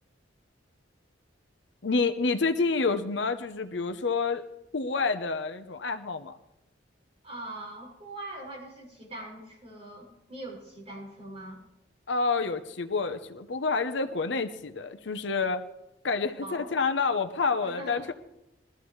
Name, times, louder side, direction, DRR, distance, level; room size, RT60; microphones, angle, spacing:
voice 1, 1.8-4.4 4.7-6.3 12.1-15.6 16.0-18.1, left 4 dB, 70° left, 9 dB, 0.8 m, -28 dB
voice 2, 7.2-11.6 16.4-16.7 17.6-18.1, right 1 dB, 35° right, -4 dB, 6.6 m, -42 dB
22.0 x 13.5 x 3.2 m, 0.90 s
head